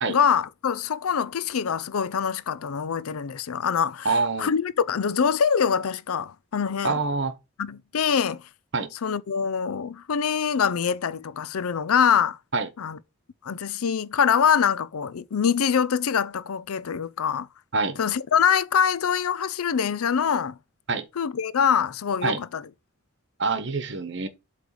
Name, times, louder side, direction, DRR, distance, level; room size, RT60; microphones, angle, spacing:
voice 1, 0.1-7.0 7.6-8.4 9.0-12.4 12.8-13.0 13.4-17.5 18.0-20.6 21.2-22.6, left 7 dB, 85° left, 0.5 m, -24 dB
voice 2, 4.0-4.5 6.8-7.3 8.7-8.9 12.5-12.7 17.7-18.0 20.9-21.0 22.2-22.4 23.4-24.3, right 4 dB, 55° right, 1.0 m, -25 dB
8.0 x 3.3 x 4.7 m
head